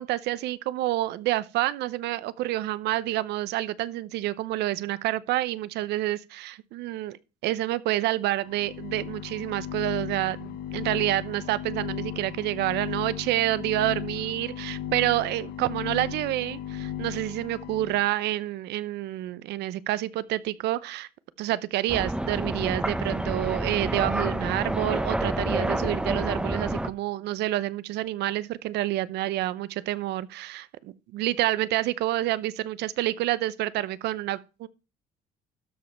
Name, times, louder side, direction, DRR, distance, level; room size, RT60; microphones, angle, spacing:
voice 1, 0.0-7.2 7.4-21.1 21.4-34.7, right 15 dB, 80° right, 0.8 m, -28 dB
sound 1, 8.4-18.1, left 10 dB, 60° left, 0.9 m, -36 dB
sound 2, 21.9-26.9, right 1 dB, 5° right, 0.9 m, -28 dB
12.5 x 5.3 x 5.7 m
cardioid pair, 110°, 17 cm